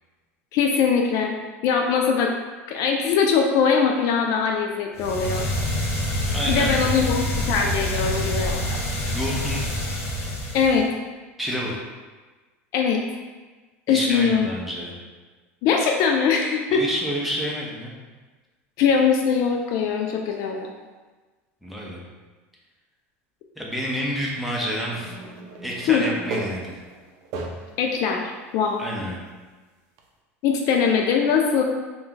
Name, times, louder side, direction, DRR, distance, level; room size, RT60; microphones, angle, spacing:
voice 1, 0.5-1.4 1.6-2.3 2.7-5.5 6.5-8.8 10.5-10.9 12.7-13.0 13.9-14.5 15.6-16.8 18.8-20.7 25.9-26.0 27.8-28.8 30.4-31.6, left 6 dB, 55° left, 2 dB, 0.3 m, -21 dB
sound 1, 4.9-10.9, left 1 dB, 40° left, 0.7 m, -26 dB
voice 2, 6.3-6.7 9.1-9.6 11.4-11.8 13.9-14.9 16.7-17.9 21.6-22.0 23.6-25.1 25.6-26.8 28.8-29.2, equal, ahead, -4 dB, 0.7 m, -28 dB
sound 2, 24.8-27.9 28.5-28.6 30.0-30.1, right 3 dB, 55° right, 0.5 m, -36 dB
2.5 x 2.2 x 3.7 m, 1.3 s
hypercardioid pair, 95°, 7 cm